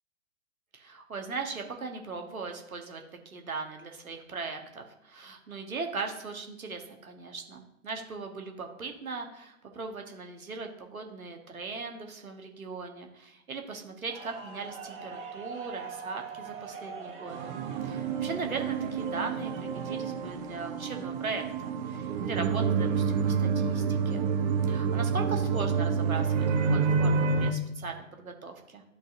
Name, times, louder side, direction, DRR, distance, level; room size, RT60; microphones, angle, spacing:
voice 1, 0.7-17.6 17.8-24.3 24.7-28.8, right 4 dB, 80° right, 4 dB, 1.2 m, -39 dB
sound 1, 14.1-19.9, right 6 dB, 15° right, 1.2 m, -43 dB
sound 2, 17.3-27.5, right 5 dB, 30° right, 0.6 m, -28 dB
12.0 x 4.0 x 2.5 m, 0.86 s
figure-of-eight pair, 115°, 42 cm